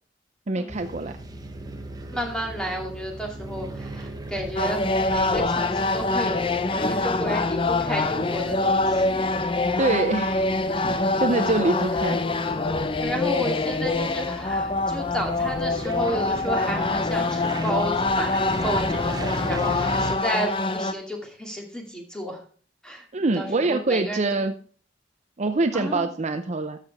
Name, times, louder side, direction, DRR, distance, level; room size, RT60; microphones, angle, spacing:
voice 1, 0.5-1.2 9.4-10.4 11.2-12.2 23.1-24.5 25.4-26.8, right 2 dB, 40° right, 8 dB, 0.6 m, -24 dB
sound 1, 0.7-20.2, right 1 dB, 20° right, 1.0 m, -37 dB
voice 2, 2.1-9.2 13.0-22.4 22.8-24.4 25.7-26.1, equal, 5° left, 1 dB, 2.4 m, -32 dB
sound 2, 4.6-20.9, left 3 dB, 30° left, 0.6 m, -25 dB
13.0 x 6.7 x 3.5 m, 0.43 s
head